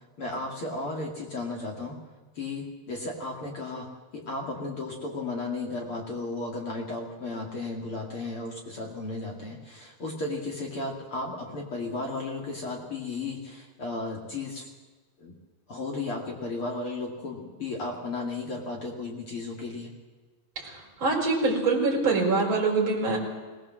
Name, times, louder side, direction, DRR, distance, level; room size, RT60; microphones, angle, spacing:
voice 1, 0.2-1.9 2.4-3.9 4.1-14.7 15.2-15.3 15.7-19.9, left 2 dB, 40° left, 1 dB, 2.6 m, -34 dB
voice 2, 20.6-23.2, right 3 dB, 30° right, 0 dB, 5.0 m, -25 dB
21.0 x 18.5 x 7.5 m, 1.3 s
omnidirectional pair, 4.3 m